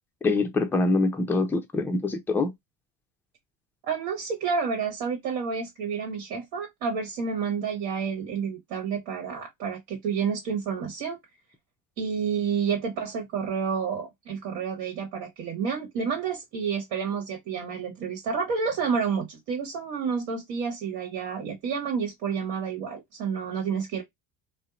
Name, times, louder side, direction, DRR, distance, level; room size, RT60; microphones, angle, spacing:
voice 1, 0.2-2.5, left 3 dB, 5° left, 0.3 m, -24 dB
voice 2, 3.8-11.2 12.0-24.0, right 6 dB, 65° right, 1.1 m, -30 dB
2.7 x 2.0 x 2.3 m
hypercardioid pair, 75°, 49 cm